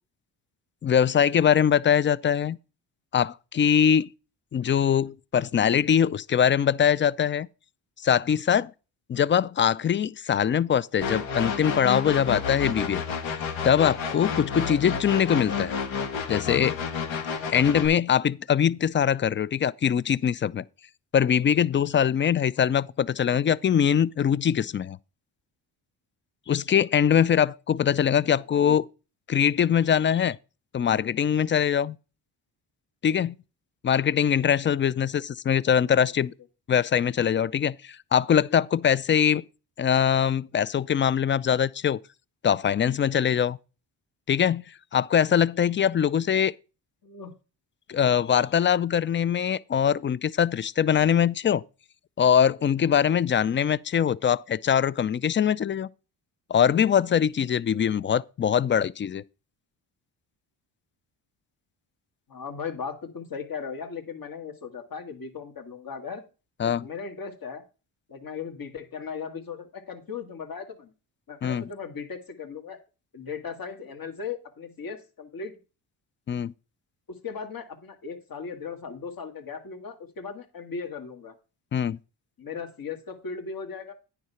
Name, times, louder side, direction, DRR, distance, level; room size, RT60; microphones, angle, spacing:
voice 1, 0.8-2.6 3.1-4.1 4.5-7.5 8.0-8.7 9.1-13.0 13.6-15.8 16.3-16.8 17.5-20.6 21.1-25.0 26.5-28.8 29.3-30.4 30.7-32.0 33.0-33.3 33.8-36.3 36.7-39.4 39.8-42.0 42.4-43.6 44.3-44.6 44.9-46.5 47.9-51.6 52.2-55.9 56.5-59.2 66.6-66.9 71.4-71.6 76.3-76.5 81.7-82.0, left 8 dB, 30° left, 0.3 m, -22 dB
sound 1, 11.0-17.9, left 6 dB, 80° left, 2.0 m, -30 dB
voice 2, 28.3-28.8 47.0-47.3 62.3-66.2 66.6-67.6 68.1-70.9 71.3-72.8 73.1-75.6 77.1-81.3 82.4-83.9, left 5 dB, 45° left, 2.1 m, -37 dB
9.4 x 4.9 x 5.6 m
cardioid pair, 75°, 46 cm